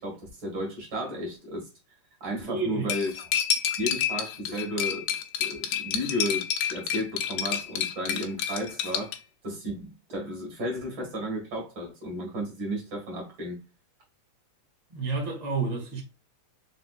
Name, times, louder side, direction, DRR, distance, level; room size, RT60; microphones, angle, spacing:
voice 1, 0.0-1.7 2.2-3.3 3.8-5.0 5.4-9.1 9.4-13.6, equal, 45° right, 2.2 m, -33 dB
voice 2, 2.5-2.9 14.9-16.0, right 4 dB, 75° right, 0.3 m, -30 dB
Cutlery silverware, 2.9-9.2, left 8 dB, 75° left, 1.9 m, -29 dB
4.9 x 4.0 x 2.4 m
omnidirectional pair, 3.5 m